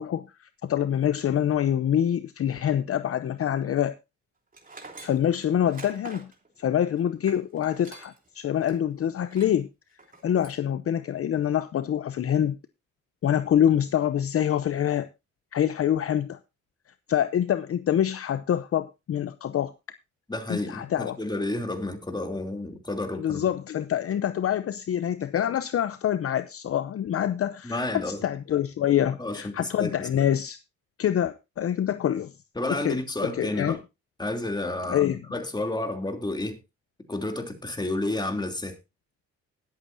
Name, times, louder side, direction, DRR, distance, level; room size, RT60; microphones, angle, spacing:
voice 1, 0.0-3.9 5.0-6.3 6.6-9.7 10.2-12.6 13.2-15.1 15.5-16.4 17.1-19.7 20.5-21.2 23.2-30.6 31.0-32.3 32.7-33.8 34.9-35.2, left 10 dB, 50° left, 0.7 m, -26 dB
Tools, 4.5-8.3 8.6-8.8 9.2-9.6 10.0-10.6, right 3 dB, 30° right, 3.0 m, -46 dB
voice 2, 20.3-23.4 27.6-28.2 29.2-30.1 32.5-33.8 34.2-35.0 35.3-36.6 37.1-38.8, left 2 dB, 15° left, 2.9 m, -31 dB
20.0 x 8.3 x 2.6 m
cardioid pair, 90°, 30 cm